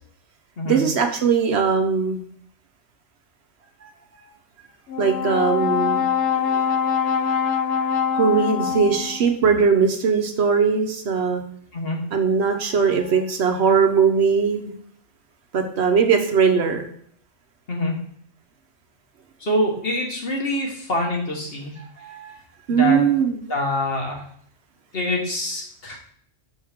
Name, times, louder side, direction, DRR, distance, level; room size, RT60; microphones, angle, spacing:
voice 1, 0.6-2.2 5.0-6.0 6.3-6.6 8.1-11.4 12.1-14.7 15.5-16.9 22.0-22.3 22.7-23.4, right 6 dB, 65° right, 5 dB, 1.0 m, -20 dB
Brass instrument, 4.9-9.3, left 7 dB, 70° left, 0.9 m, -23 dB
voice 2, 19.4-21.7 22.7-23.0 23.5-24.2 24.9-26.0, left 1 dB, 55° left, -1 dB, 1.7 m, -25 dB
6.2 x 5.4 x 3.5 m, 0.64 s
omnidirectional pair, 1.2 m